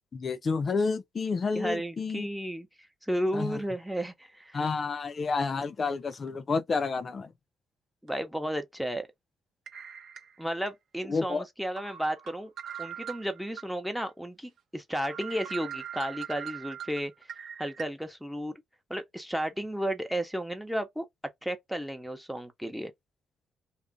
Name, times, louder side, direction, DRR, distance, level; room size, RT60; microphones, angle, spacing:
voice 1, 0.1-2.3 3.3-3.6 4.5-7.3 11.1-11.4, left 4 dB, 40° left, 0.4 m, -30 dB
voice 2, 1.5-4.6 8.0-9.1 10.4-12.5 12.8-17.1 17.6-18.6 18.9-21.0 21.4-22.9, equal, ahead, 0.7 m, -33 dB
sound 1, 6.1-6.3 6.7-6.9 8.1-8.2 9.7-10.7 11.2-11.3 11.8-13.7 14.1-14.2 14.6-14.7 15.0-17.8, right 9 dB, 65° right, 0.6 m, -41 dB
2.4 x 2.1 x 3.6 m
cardioid pair, 90°, 0 cm